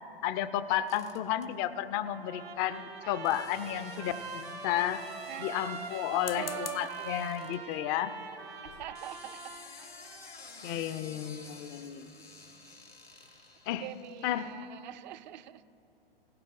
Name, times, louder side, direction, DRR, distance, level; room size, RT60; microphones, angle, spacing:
voice 1, 0.2-5.1 5.4-8.2 10.6-12.1 13.7-13.9 14.2-14.5, left 11 dB, 25° left, 12 dB, 0.3 m, -32 dB
sound 1, 0.9-1.5 3.2-7.6 8.8-14.6, left 3 dB, 85° left, 2.0 m, -53 dB
Trumpet, 2.0-9.7, right 4 dB, 80° right, 2.0 m, -43 dB
sound 2, 3.4-4.2 6.1-7.0 7.7-7.9 8.3-8.4 8.6-8.9, left 10 dB, 70° left, 0.6 m, -46 dB
voice 2, 6.1-7.1 8.6-9.6 10.6-11.0 13.8-15.6, right 12 dB, 50° right, 15 dB, 0.5 m, -43 dB
18.0 x 16.5 x 2.5 m, 2.8 s
figure-of-eight pair, 100°, 30 cm